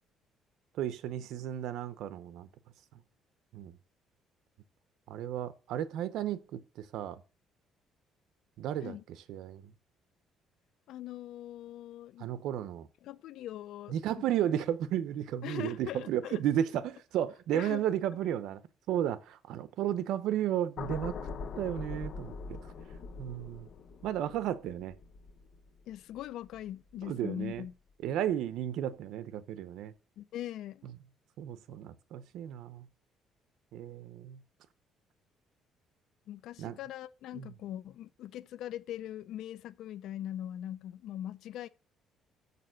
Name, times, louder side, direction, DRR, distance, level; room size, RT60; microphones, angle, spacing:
voice 1, 0.8-2.5 3.5-3.7 5.1-7.2 8.6-9.0 9.3-9.7 12.2-12.9 13.9-18.6 18.9-21.2 21.6-22.6 23.2-23.7 24.0-24.9 27.0-27.6 28.0-29.9 31.4-32.9 33.7-34.4 36.6-36.8 37.4-37.5, right 11 dB, 75° right, 0.6 m, -33 dB
voice 2, 10.9-12.3 13.0-14.3 15.4-16.4 17.5-17.8 25.9-27.7 30.2-30.9 36.3-41.7, left 12 dB, 70° left, 0.4 m, -41 dB
sound 1, 20.8-27.1 27.4-27.7, left 5 dB, 50° left, 0.9 m, -43 dB
6.8 x 6.7 x 6.3 m
cardioid pair, 150°, 0 cm